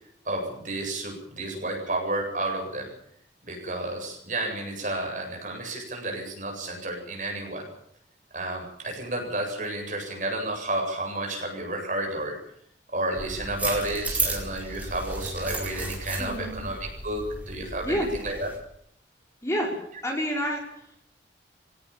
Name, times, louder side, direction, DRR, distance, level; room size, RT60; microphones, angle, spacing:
voice 1, 0.2-2.9 3.4-7.7 8.3-12.4 12.9-18.5, right 1 dB, 45° right, 1 dB, 7.9 m, -31 dB
sound 1, 13.2-18.6, right 2 dB, 10° right, 4.7 m, -33 dB
voice 2, 16.2-16.6 17.8-18.1 19.4-19.7 20.0-21.0, equal, 15° left, 0 dB, 4.9 m, -28 dB
23.0 x 17.5 x 7.3 m, 0.70 s
head